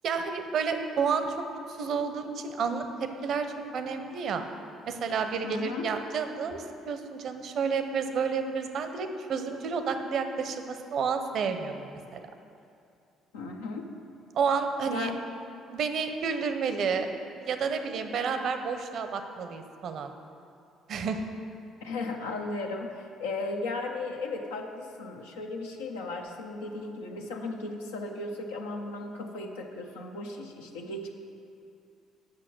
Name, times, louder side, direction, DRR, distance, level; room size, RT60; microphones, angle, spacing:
voice 1, 0.0-2.8 3.2-3.5 3.7-4.5 4.9-11.8 12.1-12.2 14.3-15.1 15.7-17.1 17.4-20.1 20.9-21.2, right 5 dB, 60° right, 7 dB, 0.7 m, -30 dB
voice 2, 5.4-5.9 13.3-13.9 14.9-15.2 21.8-31.1, left 2 dB, 85° left, 1 dB, 0.8 m, -36 dB
8.9 x 6.0 x 6.2 m, 2.5 s
hypercardioid pair, 55°, 0 cm